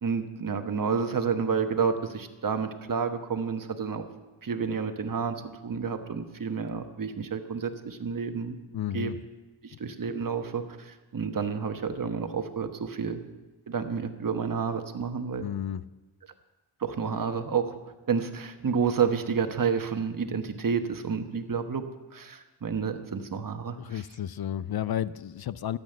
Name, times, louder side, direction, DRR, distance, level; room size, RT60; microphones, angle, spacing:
voice 1, 0.0-4.1 4.4-8.6 8.9-9.1 9.6-13.2 13.7-15.5 16.8-17.7 18.1-21.8 22.1-24.0, right 6 dB, 40° right, 7 dB, 1.2 m, -30 dB
voice 2, 8.7-9.2 15.4-15.8 23.8-25.8, left 10 dB, 50° left, 17 dB, 0.5 m, -32 dB
12.5 x 8.5 x 6.7 m, 1.2 s
cardioid pair, 75°, 48 cm